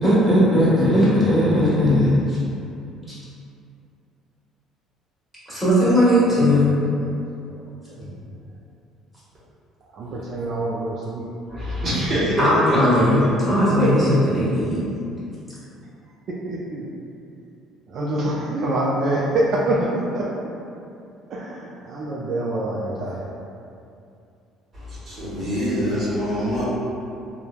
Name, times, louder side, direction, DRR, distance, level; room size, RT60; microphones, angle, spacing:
voice 1, 0.0-2.4 5.5-6.8 12.4-14.8, equal, 5° left, -12 dB, 1.2 m, -18 dB
voice 2, 6.3-6.6 7.9-8.2 9.9-11.3 16.4-16.9 17.9-20.2 21.3-23.3, right 1 dB, 55° right, -5 dB, 0.3 m, -25 dB
voice 3, 11.5-12.8 13.2-13.3 24.7-26.6, equal, 40° right, -9 dB, 0.9 m, -25 dB
3.1 x 2.1 x 2.3 m, 2.6 s
cardioid pair, 110°, 0 cm